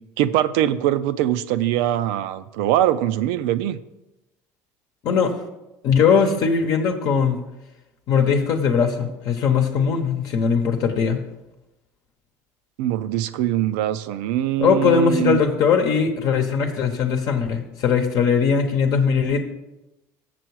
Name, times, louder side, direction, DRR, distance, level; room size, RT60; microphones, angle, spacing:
voice 1, 0.2-3.8 12.8-15.4, right 12 dB, 80° right, 13 dB, 0.5 m, -22 dB
voice 2, 5.8-7.4 8.1-11.2 14.6-19.4, left 6 dB, 55° left, 4 dB, 0.9 m, -20 dB
7.6 x 6.8 x 4.7 m, 0.95 s
cardioid pair, 125°, 8 cm